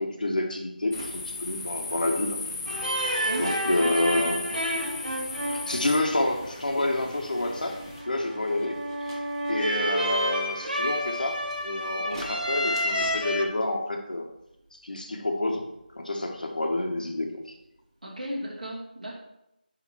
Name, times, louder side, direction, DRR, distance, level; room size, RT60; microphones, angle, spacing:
voice 1, 0.0-2.4 2.7-3.1 3.4-4.4 5.5-14.3 14.7-17.5, left 2 dB, 60° left, 3 dB, 1.2 m, -29 dB
sound 1, 0.8-17.8 18.0-18.5, right 1 dB, 30° right, 1.2 m, -47 dB
sound 2, 0.9-8.0, left 3 dB, 20° left, 0.6 m, -37 dB
sound 3, 2.7-13.4, equal, 70° right, 2.8 m, -30 dB
voice 2, 3.2-4.4 18.0-19.2, equal, 50° right, -3 dB, 2.4 m, -36 dB
10.0 x 3.5 x 4.6 m, 0.85 s
figure-of-eight pair, 165°, 5 cm